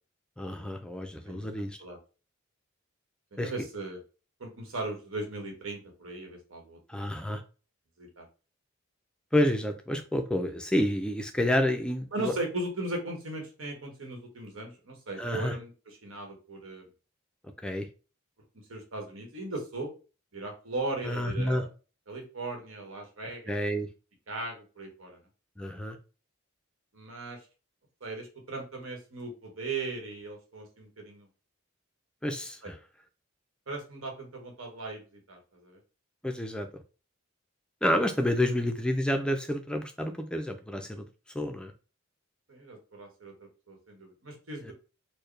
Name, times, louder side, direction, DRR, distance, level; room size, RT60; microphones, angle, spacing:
voice 1, 0.4-1.8 3.4-3.5 6.9-7.4 9.3-12.3 15.2-15.5 17.6-17.9 21.0-21.6 23.5-23.9 25.6-26.0 32.2-32.7 36.2-36.7 37.8-41.1 41.3-41.7 44.6-44.7, left 1 dB, 5° left, 0.4 m, -29 dB
voice 2, 3.3-4.0 4.4-6.8 8.0-8.3 12.1-16.8 18.7-19.9 20.3-21.7 22.1-23.5 24.3-25.2 26.9-27.5 28.0-31.3 32.6-32.7 33.7-35.8 42.5-44.7, right 2 dB, 80° right, 1.2 m, -38 dB
4.5 x 2.2 x 3.2 m
head